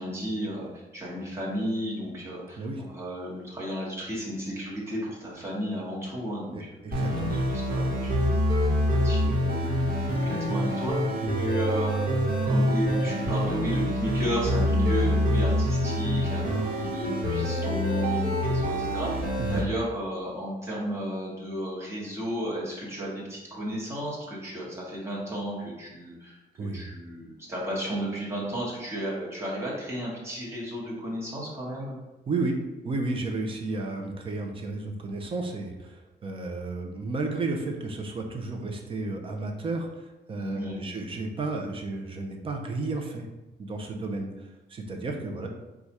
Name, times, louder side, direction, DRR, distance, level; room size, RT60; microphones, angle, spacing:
voice 1, 0.0-6.7 7.0-7.1 7.3-11.1 11.4-12.1 12.4-32.0 40.3-40.8, equal, 15° right, -6 dB, 1.1 m, -33 dB
voice 2, 6.5-7.4 11.2-11.4 19.4-19.7 26.6-26.8 32.3-32.6 32.8-43.3 43.6-45.5, right 3 dB, 30° right, 3 dB, 0.5 m, -32 dB
sound 1, 6.9-19.6, equal, 55° right, 1.2 m, -26 dB
4.7 x 2.4 x 4.1 m, 1.1 s
wide cardioid pair, 175°, 18 cm